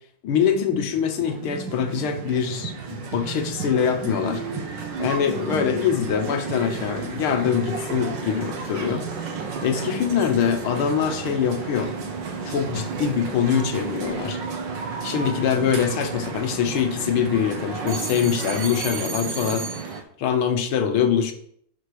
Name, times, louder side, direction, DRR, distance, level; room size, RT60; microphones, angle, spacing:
voice 1, 0.2-4.4 5.0-9.0 9.6-12.0 12.5-14.4 15.0-19.9 20.2-21.3, left 8 dB, 75° left, 7 dB, 1.8 m, -24 dB
sound 1, 1.0-20.0, right 5 dB, 60° right, 1.7 m, -32 dB
11.5 x 5.0 x 4.8 m, 0.67 s
omnidirectional pair, 2.4 m